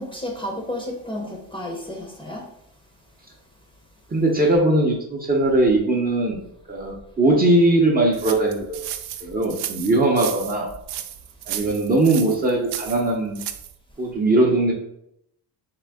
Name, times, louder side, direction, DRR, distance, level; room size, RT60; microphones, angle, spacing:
voice 1, 0.0-2.4, left 1 dB, 10° left, 0 dB, 0.7 m, -32 dB
voice 2, 4.1-6.4 6.7-8.8 9.2-10.7 11.5-13.4 14.0-14.7, right 2 dB, 20° right, -2 dB, 0.6 m, -20 dB
sound 1, 8.1-13.7, right 11 dB, 75° right, 0.5 m, -34 dB
3.7 x 3.2 x 3.4 m, 0.75 s
cardioid pair, 130°, 42 cm